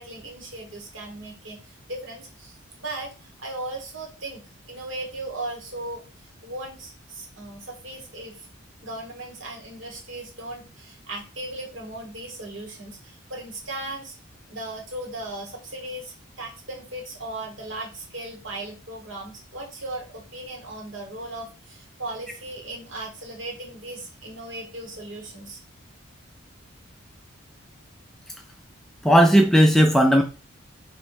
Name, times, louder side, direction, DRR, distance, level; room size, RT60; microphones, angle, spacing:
voice 1, 0.0-6.0 6.4-8.5 8.8-14.1 14.5-25.6, right 2 dB, 65° right, 0 dB, 1.4 m, -37 dB
voice 2, 29.0-30.2, equal, ahead, 3 dB, 0.3 m, -15 dB
3.1 x 3.1 x 4.7 m, 0.33 s
head